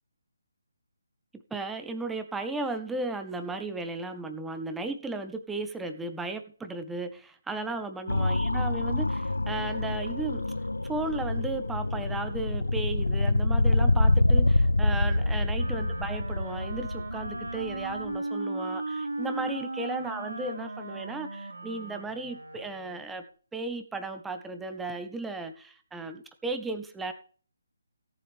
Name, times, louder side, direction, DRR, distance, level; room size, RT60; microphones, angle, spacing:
voice 1, 1.3-10.5 10.8-23.2 23.5-27.1, right 3 dB, 5° right, 7 dB, 1.2 m, -35 dB
sound 1, 8.1-18.2, left 2 dB, 85° left, 0.6 m, -26 dB
Wind instrument woodwind instrument, 15.0-23.1, right 2 dB, 75° right, 4.2 m, -37 dB
17.0 x 7.9 x 3.5 m, 0.43 s
figure-of-eight pair, 145°, 0 cm